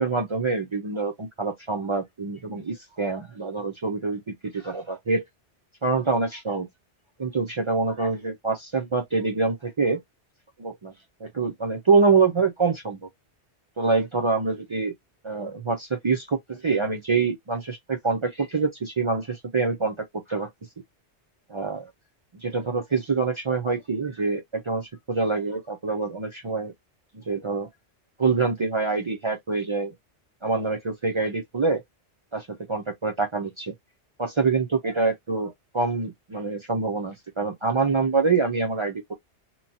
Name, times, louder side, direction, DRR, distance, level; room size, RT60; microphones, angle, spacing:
voice 1, 0.0-4.2 4.5-5.2 5.8-6.7 7.2-10.0 10.6-10.9 11.2-13.1 13.8-14.9 15.2-19.9 20.3-20.5 21.5-21.8 22.4-26.7 27.3-27.7 28.2-29.9 30.4-31.8 32.3-33.7 34.2-39.1, right 4 dB, 50° right, 0.3 m, -25 dB
3.0 x 2.2 x 2.6 m
omnidirectional pair, 1.2 m